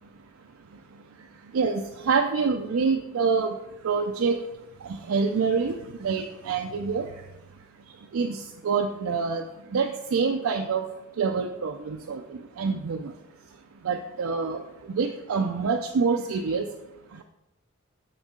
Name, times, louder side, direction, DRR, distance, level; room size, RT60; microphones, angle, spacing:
voice 1, 1.5-3.5 3.8-4.4 5.1-5.7 6.0-7.1 8.1-9.4 9.7-10.8 11.2-12.2 12.6-13.0 13.9-14.6 14.9-16.7, right 5 dB, 90° right, 5 dB, 0.4 m, -26 dB
6.4 x 6.3 x 3.7 m, 0.94 s
head